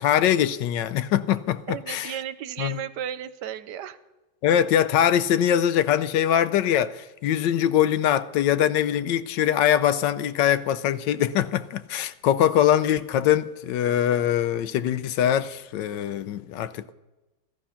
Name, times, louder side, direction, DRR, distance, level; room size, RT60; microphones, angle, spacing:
voice 1, 0.0-2.2 2.6-2.8 4.4-16.9, left 10 dB, 85° left, 1.3 m, -22 dB
voice 2, 1.7-4.0, right 10 dB, 75° right, 1.3 m, -34 dB
14.0 x 14.0 x 5.7 m
omnidirectional pair, 1.9 m